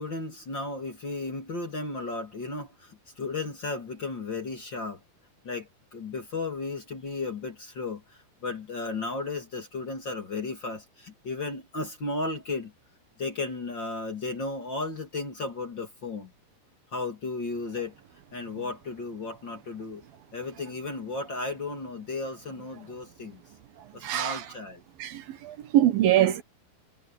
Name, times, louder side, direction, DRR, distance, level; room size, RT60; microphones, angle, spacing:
voice 1, 0.0-5.0 5.4-12.7 13.2-16.3 16.9-18.0 18.3-20.0 20.3-23.4 23.9-24.8, left 3 dB, 35° left, 2.6 m, -34 dB
voice 2, 24.0-24.4 25.0-26.4, right 12 dB, 70° right, 2.9 m, -23 dB
omnidirectional pair, 4.5 m